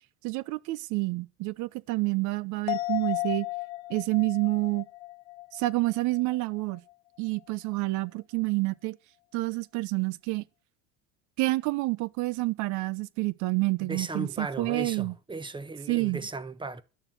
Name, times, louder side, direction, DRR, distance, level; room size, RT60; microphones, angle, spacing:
voice 1, 0.2-3.5 3.9-4.9 5.5-6.8 7.2-9.0 9.3-10.4 11.4-15.1 15.9-16.2, right 21 dB, 65° right, 0.9 m, -28 dB
sound 1, 2.7-6.4 6.7-6.8, left 20 dB, 90° left, 0.9 m, -35 dB
voice 2, 13.8-16.8, right 2 dB, 15° right, 1.2 m, -36 dB
11.5 x 6.8 x 9.3 m
supercardioid pair, 105°, 32 cm